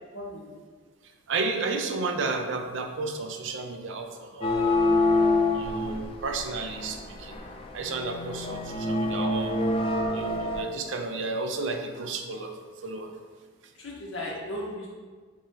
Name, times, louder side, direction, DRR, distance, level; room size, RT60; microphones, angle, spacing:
voice 1, 0.1-0.5 13.7-14.9, left 1 dB, 75° left, -4 dB, 1.3 m, -36 dB
voice 2, 1.3-4.7 5.5-7.4 7.7-9.6 10.1-12.5 12.8-13.1, right 3 dB, 65° right, 5 dB, 0.5 m, -32 dB
sound 1, 4.4-10.6, left 2 dB, 30° left, 0.4 m, -26 dB
4.7 x 3.7 x 2.8 m, 1.5 s
head